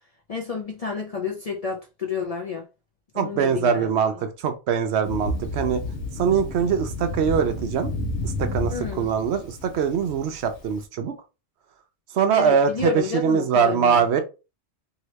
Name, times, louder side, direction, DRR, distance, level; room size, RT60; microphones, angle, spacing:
voice 1, 0.3-2.6 3.1-3.9 8.7-9.1 12.3-14.0, left 5 dB, 45° left, 0.5 m, -30 dB
voice 2, 3.2-5.8 6.2-7.9 8.2-11.1 12.1-14.2, right 7 dB, 70° right, 0.8 m, -22 dB
Thunder, 5.0-10.7, left 1 dB, 80° left, 1.0 m, -31 dB
2.9 x 2.8 x 3.1 m
omnidirectional pair, 1.2 m